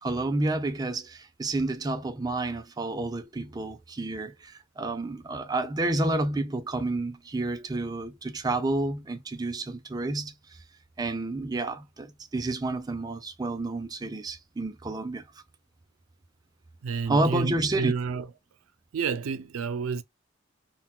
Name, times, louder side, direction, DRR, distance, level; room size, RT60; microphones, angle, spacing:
voice 1, 0.0-10.3 11.0-15.2 17.1-17.9, right 2 dB, 20° right, 0.4 m, -30 dB
voice 2, 16.8-18.3 18.9-20.0, right 5 dB, 85° right, 0.4 m, -30 dB
3.8 x 2.2 x 2.2 m
head